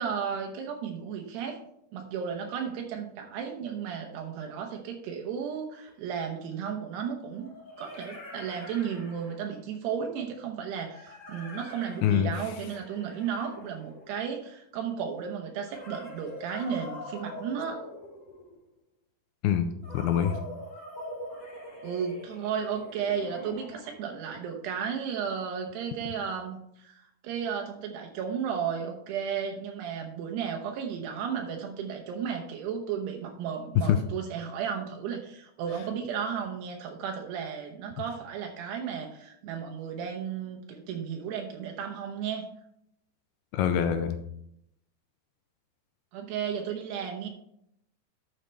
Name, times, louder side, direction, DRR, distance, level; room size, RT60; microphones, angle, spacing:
voice 1, 0.0-1.6 1.9-7.5 7.8-17.8 21.8-42.5 46.1-47.3, right 7 dB, 80° right, 2 dB, 3.0 m, -34 dB
sound 1, 5.8-5.9 7.3-9.7 10.9-14.4 15.6-18.7 19.8-24.1, left 1 dB, 40° left, 4.3 m, -44 dB
voice 2, 12.0-12.3 19.4-20.4 33.9-34.0 43.5-44.2, left 9 dB, 80° left, 8 dB, 2.4 m, -25 dB
12.0 x 6.5 x 3.3 m, 0.75 s
omnidirectional pair, 4.8 m